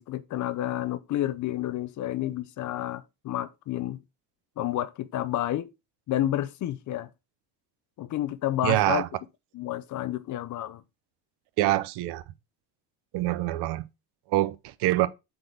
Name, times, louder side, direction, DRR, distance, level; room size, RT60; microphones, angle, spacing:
voice 1, 0.0-4.0 4.6-5.7 6.1-7.1 8.0-9.0 9.5-10.8, left 13 dB, 50° left, 0.5 m, -30 dB
voice 2, 8.6-9.1 11.6-12.2 13.1-13.9 14.3-15.1, right 16 dB, 85° right, 0.7 m, -25 dB
7.9 x 4.0 x 3.3 m
cardioid pair, 150°, 39 cm